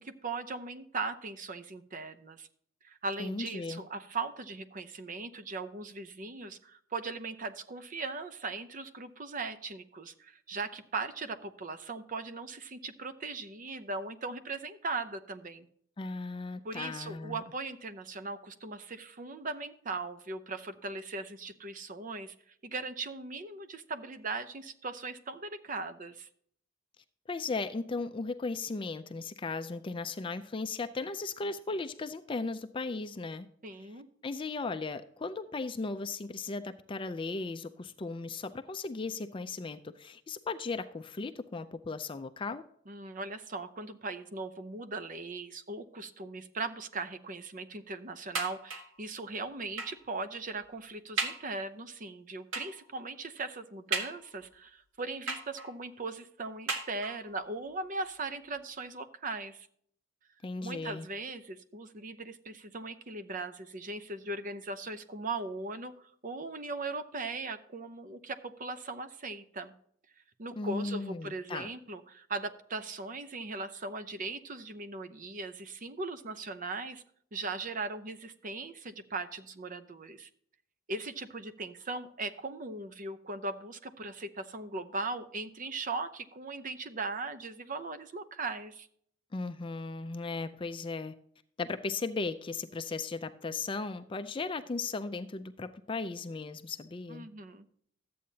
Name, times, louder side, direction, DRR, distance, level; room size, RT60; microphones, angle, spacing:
voice 1, 0.0-2.5 2.8-15.7 16.6-22.3 22.6-26.3 33.6-34.1 42.9-59.7 60.6-69.7 70.4-77.0 77.3-80.3 80.9-88.9 97.1-97.7, right 3 dB, 45° right, 10 dB, 0.7 m, -39 dB
voice 2, 3.2-3.8 16.0-17.4 27.3-33.5 34.2-42.7 60.4-61.1 70.6-71.7 89.3-91.1 91.6-97.3, left 3 dB, 25° left, 10 dB, 0.4 m, -36 dB
sound 1, 48.3-49.0 49.8-50.1 50.6-50.7 51.2-51.5 52.5-52.9 53.9-54.5 55.3-55.9 56.7-57.4 58.2-58.3 58.6-58.7, right 3 dB, 90° right, 1.6 m, -36 dB
13.0 x 8.5 x 2.8 m, 0.63 s
head